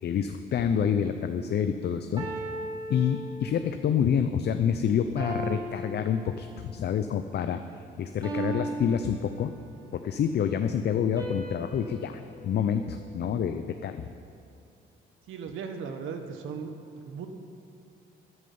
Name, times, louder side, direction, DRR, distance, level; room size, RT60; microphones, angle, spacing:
voice 1, 0.0-2.3 2.9-7.6 8.0-9.5 9.9-14.1, left 8 dB, 55° left, 8 dB, 0.6 m, -27 dB
sound 1, 0.7-1.0 2.2-3.8 5.2-6.8 8.2-9.9 11.2-13.6, right 2 dB, 20° right, 3.9 m, -38 dB
voice 2, 15.3-17.3, right 6 dB, 85° right, 6 dB, 1.3 m, -37 dB
13.5 x 11.0 x 5.5 m, 2.4 s
cardioid pair, 90°, 20 cm